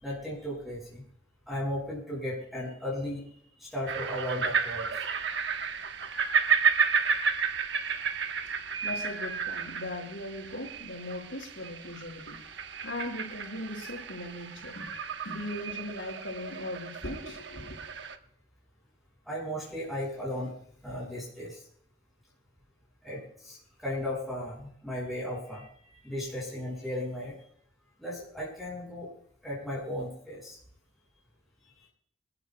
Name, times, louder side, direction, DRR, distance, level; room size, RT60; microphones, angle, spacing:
voice 1, 0.0-1.0 1.5-3.2 3.6-5.0 19.2-20.5 20.8-21.6 23.0-27.5 28.0-29.1 29.4-30.6, left 1 dB, ahead, -5 dB, 5.9 m, -36 dB
sound 1, 3.9-18.2, right 6 dB, 70° right, 1.0 m, -32 dB
voice 2, 8.8-12.4 12.8-14.9 15.2-17.8, left 1 dB, 80° left, 1 dB, 5.2 m, -39 dB
27.5 x 12.0 x 2.3 m, 0.66 s
head